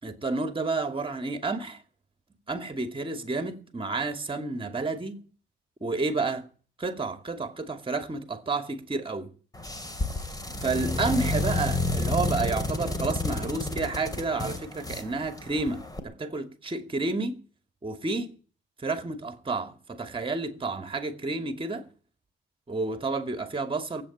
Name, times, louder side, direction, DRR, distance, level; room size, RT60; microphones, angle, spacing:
voice 1, 0.0-1.8 2.5-5.2 5.8-6.5 6.8-9.3 10.6-17.4 17.8-18.4 18.8-21.9 22.7-24.0, right 3 dB, 25° right, 2.5 m, -30 dB
sound 1, 9.5-16.0, left 2 dB, 20° left, 2.8 m, -30 dB
18.0 x 8.5 x 8.6 m
cardioid pair, 90°, 20 cm